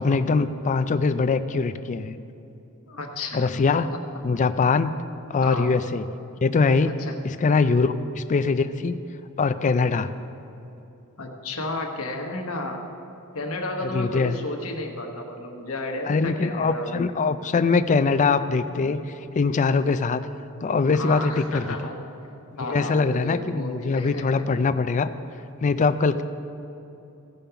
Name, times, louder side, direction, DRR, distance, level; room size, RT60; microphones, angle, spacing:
voice 1, 0.0-2.2 3.3-3.9 4.2-4.9 5.3-6.0 6.4-6.9 7.2-9.0 9.4-10.1 13.8-14.4 16.1-19.0 19.4-20.3 20.6-21.8 22.7-25.1 25.6-26.2, left 4 dB, 35° left, 11 dB, 0.4 m, -22 dB
voice 2, 2.9-3.5 3.9-4.0 5.4-5.7 6.9-7.2 7.6-7.7 11.2-12.9 13.3-17.1 20.9-22.0 22.6-24.4, left 2 dB, 65° left, 2 dB, 1.1 m, -32 dB
16.0 x 5.3 x 5.7 m, 2.9 s
head